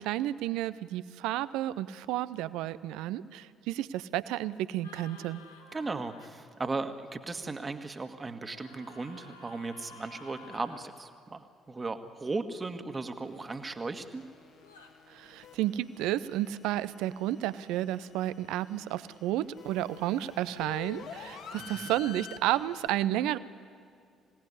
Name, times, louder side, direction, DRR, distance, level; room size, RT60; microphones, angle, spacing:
voice 1, 0.0-5.4 15.1-23.4, right 14 dB, 65° right, 16 dB, 0.7 m, -32 dB
sound 1, 4.8-6.3 8.5-10.9 14.6-14.9, left 3 dB, 80° left, 1.8 m, -52 dB
voice 2, 5.7-14.2 21.6-21.8, right 3 dB, 25° right, 7 dB, 1.8 m, -37 dB
sound 2, 13.2-22.9, left 7 dB, 65° left, 2.7 m, -49 dB
26.0 x 17.5 x 9.9 m, 2.3 s
figure-of-eight pair, 45°, 0 cm